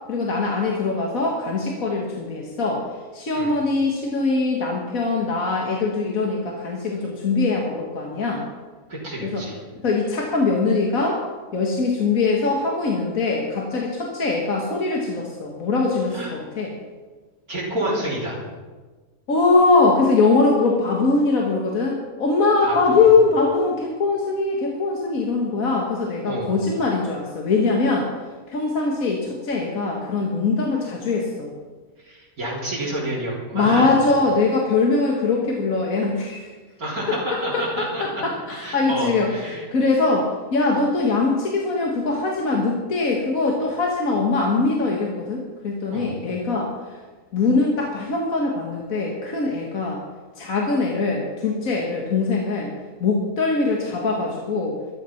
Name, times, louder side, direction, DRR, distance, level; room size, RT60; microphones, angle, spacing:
voice 1, 0.1-2.8 3.1-8.4 9.2-9.4 9.8-11.2 11.5-16.7 19.3-28.1 28.5-31.5 33.5-36.5 37.5-39.3 39.7-47.0 47.3-50.0 50.4-52.7 53.0-54.8, left 3 dB, 70° left, -1 dB, 2.0 m, -22 dB
voice 2, 8.9-9.6 16.1-16.3 17.5-18.4 22.6-23.1 26.3-26.5 32.0-33.9 36.8-38.2 38.5-39.6 45.9-46.1, right 1 dB, 75° right, -7 dB, 4.2 m, -29 dB
14.5 x 11.5 x 5.9 m, 1.4 s
omnidirectional pair, 1.5 m